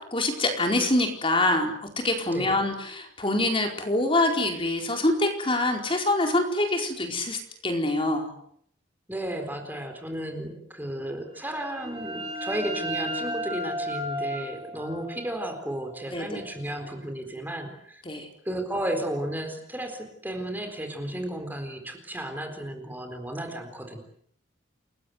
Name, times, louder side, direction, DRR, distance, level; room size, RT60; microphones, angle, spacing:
voice 1, 0.1-8.3 16.1-16.4 18.0-18.3, left 2 dB, 30° left, 3 dB, 4.6 m, -25 dB
voice 2, 9.1-18.0 18.4-24.0, right 1 dB, 10° right, 5 dB, 4.1 m, -33 dB
sound 1, 11.4-16.9, equal, 30° right, 4.7 m, -35 dB
29.5 x 21.0 x 8.1 m, 0.68 s
head